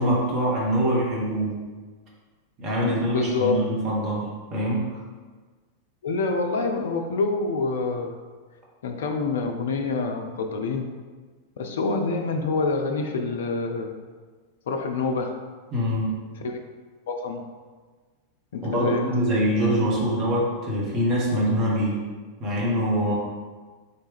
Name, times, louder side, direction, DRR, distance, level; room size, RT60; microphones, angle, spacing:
voice 1, 0.0-1.5 2.6-4.8 15.7-16.1 18.6-22.0 22.4-23.1, equal, 35° right, -4 dB, 1.3 m, -24 dB
voice 2, 2.8-3.6 6.0-8.1 8.8-11.0 11.6-13.9 14.7-15.4 16.4-16.6 17.1-17.4 18.5-19.2, left 3 dB, 60° left, 4 dB, 0.3 m, -27 dB
3.9 x 3.1 x 3.4 m, 1.4 s
figure-of-eight pair, 90°, 0 cm